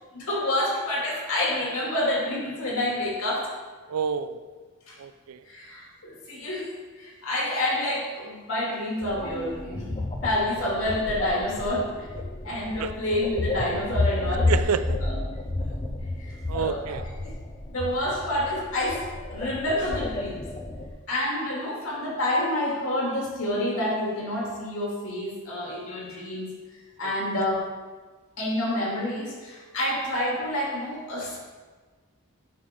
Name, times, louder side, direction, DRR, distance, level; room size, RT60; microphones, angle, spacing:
voice 1, 0.1-3.5 4.9-5.0 5.5-6.7 7.0-12.1 12.4-14.5 15.0-15.2 16.2-16.8 17.2-17.3 17.7-19.0 19.3-20.5 21.1-26.5 27.0-27.6 28.4-31.4, left 1 dB, 70° left, 2.6 m, -28 dB
voice 2, 3.9-4.4 5.0-5.4 12.8-12.9 14.5-15.0 16.5-17.0 27.0-27.1, right 6 dB, 90° right, 0.4 m, -28 dB
sound 1, 9.0-20.9, left 2 dB, 25° left, 0.5 m, -31 dB
9.5 x 6.0 x 3.7 m
head